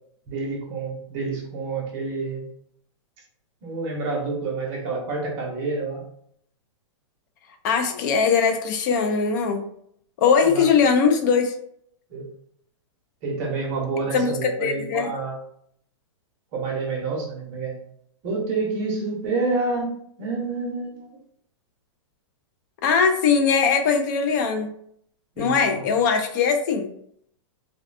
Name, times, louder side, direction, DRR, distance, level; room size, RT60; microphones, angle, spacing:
voice 1, 0.3-2.5 3.6-6.1 10.4-10.7 12.1-12.3 13.2-15.4 16.5-17.7 18.2-19.9 20.2-21.1 25.4-25.9, right 3 dB, 35° right, -1 dB, 0.8 m, -28 dB
voice 2, 7.6-9.6 10.2-11.5 14.1-15.1 22.8-24.7 25.4-26.9, left 6 dB, 40° left, 5 dB, 0.4 m, -20 dB
2.6 x 2.2 x 2.5 m, 0.67 s
hypercardioid pair, 160°, 16 cm